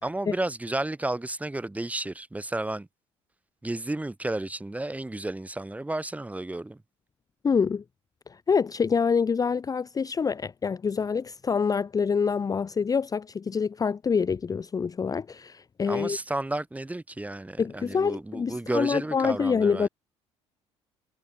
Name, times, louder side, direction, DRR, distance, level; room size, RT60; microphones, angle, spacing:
voice 1, 0.0-2.9 3.6-6.8 15.9-19.9, right 2 dB, 10° right, 1.9 m, -32 dB
voice 2, 7.4-7.8 8.3-16.2 17.6-19.9, left 6 dB, 25° left, 0.8 m, -26 dB
figure-of-eight pair, 55°, 15 cm